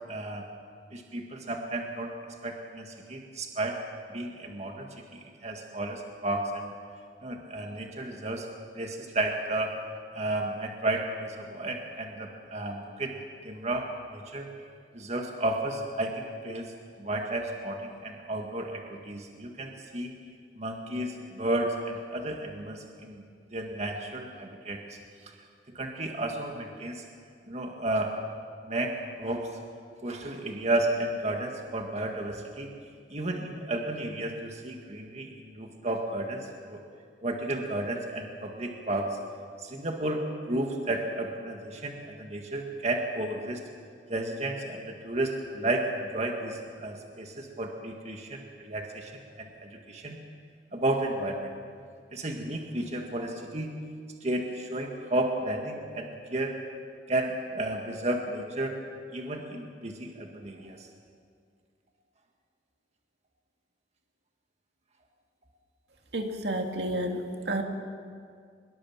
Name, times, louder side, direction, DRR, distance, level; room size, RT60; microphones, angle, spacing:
voice 1, 0.1-0.4 0.9-2.1 2.4-3.8 4.1-6.7 7.2-8.5 8.8-9.7 10.1-13.1 13.4-14.5 14.9-16.7 17.0-20.1 20.6-23.2 23.5-24.8 25.7-27.0 27.5-28.1 28.6-29.6 30.0-32.7 33.1-36.8 37.2-39.1 39.6-43.6 44.1-50.2 50.7-51.5 52.1-53.7 54.2-56.5 57.1-58.7 59.1-60.9, right 1 dB, 40° right, 2 dB, 1.9 m, -32 dB
voice 2, 66.1-67.6, right 1 dB, 65° right, 3 dB, 2.3 m, -30 dB
24.0 x 22.0 x 7.4 m, 2.2 s
head